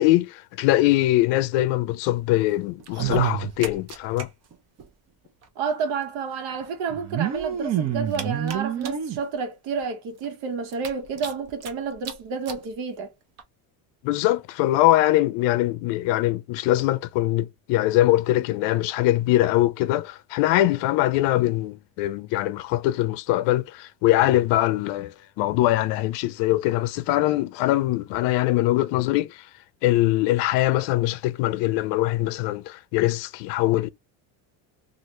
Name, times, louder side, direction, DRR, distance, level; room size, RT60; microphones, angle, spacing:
voice 1, 0.0-4.3 14.0-29.5 29.8-33.9, left 15 dB, 70° left, 0.5 m, -22 dB
sound 1, 2.8-4.2 4.5-4.6 4.8-4.9 5.9-6.0 6.9-9.2 9.8-9.9 10.2-10.3 10.7-11.7 12.0-12.1 12.5-12.6 13.4-13.5, right 9 dB, 35° right, 0.7 m, -28 dB
voice 2, 5.6-13.1, right 5 dB, 75° right, 1.2 m, -30 dB
2.7 x 2.5 x 3.1 m
cardioid pair, 135°, 45 cm